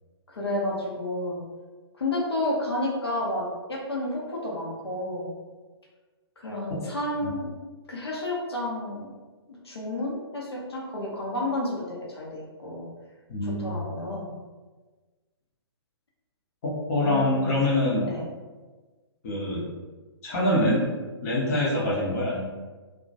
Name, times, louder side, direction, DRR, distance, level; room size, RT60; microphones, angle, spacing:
voice 1, 0.3-1.4 1.9-5.3 6.4-7.6 7.9-9.1 9.5-12.9 13.4-14.3 17.0-17.5 18.0-18.2, left 1 dB, 70° left, -4 dB, 0.7 m, -31 dB
voice 2, 13.3-13.8 16.6-18.1 19.2-19.7 20.2-20.9 21.2-22.5, left 1 dB, 35° left, -5 dB, 0.6 m, -25 dB
2.1 x 2.1 x 2.7 m, 1.3 s
figure-of-eight pair, 125°, 14 cm